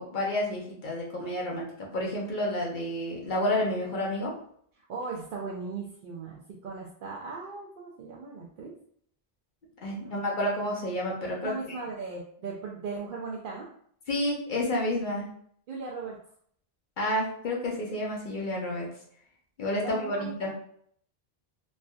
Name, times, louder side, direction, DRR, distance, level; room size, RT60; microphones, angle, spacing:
voice 1, 0.0-4.4 9.8-11.5 14.1-15.3 17.0-18.9 19.6-20.5, left 1 dB, 55° left, -3 dB, 0.8 m, -30 dB
voice 2, 4.8-8.7 9.9-10.2 11.4-13.7 15.7-16.2 19.8-20.5, right 4 dB, 60° right, -3 dB, 0.6 m, -38 dB
3.2 x 2.6 x 2.2 m, 0.63 s
omnidirectional pair, 1.0 m